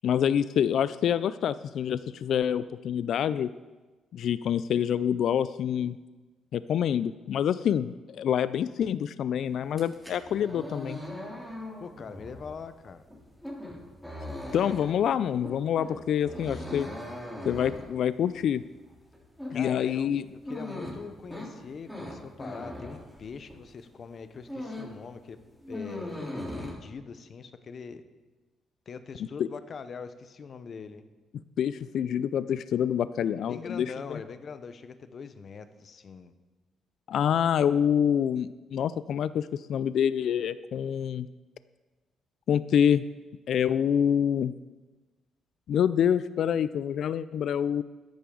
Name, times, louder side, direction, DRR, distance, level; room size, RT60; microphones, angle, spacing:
voice 1, 0.0-3.5 4.1-6.0 6.5-11.0 14.5-16.9 17.4-18.6 19.5-20.2 29.4-29.5 31.6-34.2 37.1-41.3 42.5-43.0 43.5-44.5 45.7-47.8, left 9 dB, 70° left, 15 dB, 0.3 m, -26 dB
sound 1, 9.6-23.7 24.1-25.0 25.3-26.7, left 1 dB, 5° left, 3.3 m, -40 dB
voice 2, 11.8-13.0 19.5-25.4 25.7-28.0 28.9-31.0 33.5-36.3, left 5 dB, 50° left, 11 dB, 0.8 m, -42 dB
13.5 x 10.5 x 3.8 m, 1.2 s
cardioid pair, 90°, 0 cm